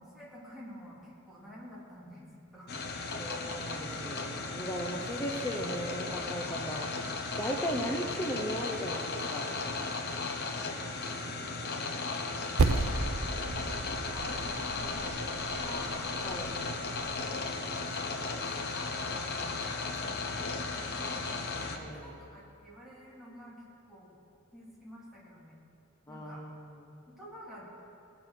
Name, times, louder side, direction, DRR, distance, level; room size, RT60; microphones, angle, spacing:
voice 1, 0.0-2.7 3.0-3.3 6.5-6.6 13.5-16.1 16.7-17.5 17.9-18.4 18.6-21.4 21.8-24.2 24.5-25.6 26.1-26.4 27.1-27.7, equal, ahead, -7 dB, 2.8 m, -51 dB
sound 1, 2.7-21.8, left 3 dB, 50° left, 0.9 m, -36 dB
voice 2, 3.2-9.5 16.2-16.6 21.7-22.1 26.1-27.0, equal, 15° left, -1 dB, 0.8 m, -37 dB
sound 2, 4.3-13.9, equal, 45° right, 3.3 m, -56 dB
Percussion, 12.6-17.4, right 3 dB, 90° right, 0.6 m, -33 dB
19.0 x 7.0 x 6.1 m, 2.7 s
head